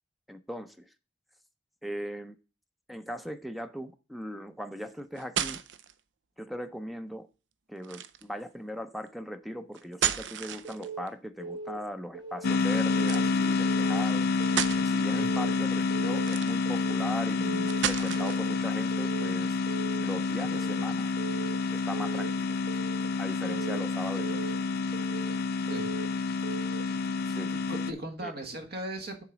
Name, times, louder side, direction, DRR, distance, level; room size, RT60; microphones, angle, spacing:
voice 1, 0.3-0.9 1.8-2.3 2.9-5.6 6.4-7.3 7.7-14.3 14.8-19.6 20.0-21.1 21.7-22.6 23.2-24.5 27.3-27.5 28.2-28.3, equal, ahead, 0.5 m, -39 dB
sound 1, 4.9-5.9 7.8-8.3 9.7-11.1 13.0-13.3 13.9-14.0 14.4-14.8 16.1-16.8 17.7-18.5, right 9 dB, 75° right, 0.6 m, -32 dB
Keyboard (musical) / Alarm, 10.6-11.0 11.4-11.8 12.1-12.5 12.9-13.3 13.6-14.0 14.4-14.8 15.2-15.5 15.9-16.3 16.7-17.0 17.4-17.8 18.2-18.5 18.9-19.3 19.7-20.0 20.4-20.8 21.2-21.5 21.9-22.3 22.7-23.1 23.4-23.8 24.2-24.6 24.9-25.3 25.7-26.1 26.4-26.8, right 3 dB, 30° right, 1.0 m, -39 dB
sound 2, 12.4-27.9, left 4 dB, 55° left, 0.4 m, -28 dB
voice 2, 27.5-29.2, right 1 dB, 60° right, 1.5 m, -38 dB
7.1 x 3.9 x 5.8 m
head